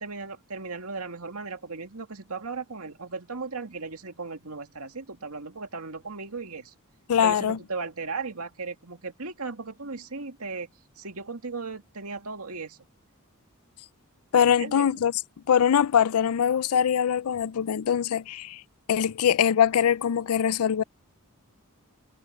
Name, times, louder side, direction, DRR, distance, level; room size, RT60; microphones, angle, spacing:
voice 1, 0.0-6.7 7.2-10.7 11.0-12.8 14.6-15.0, right 4 dB, 80° right, 2.3 m, -36 dB
voice 2, 7.1-7.6 14.3-15.1 15.5-18.6 18.9-20.8, left 8 dB, 75° left, 0.4 m, -22 dB
head